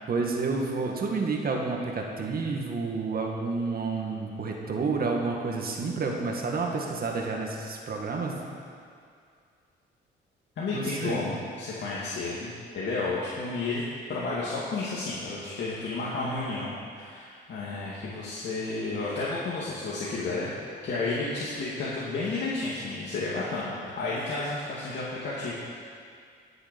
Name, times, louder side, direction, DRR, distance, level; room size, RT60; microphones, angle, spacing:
voice 1, 0.1-8.4 10.7-11.2, right 4 dB, 50° right, 0 dB, 1.9 m, -30 dB
voice 2, 10.6-12.5 12.7-13.8 14.1-20.5 20.8-25.5, left 3 dB, 65° left, -7 dB, 2.3 m, -31 dB
18.5 x 7.0 x 5.3 m, 2.2 s
cardioid pair, 90°, 20 cm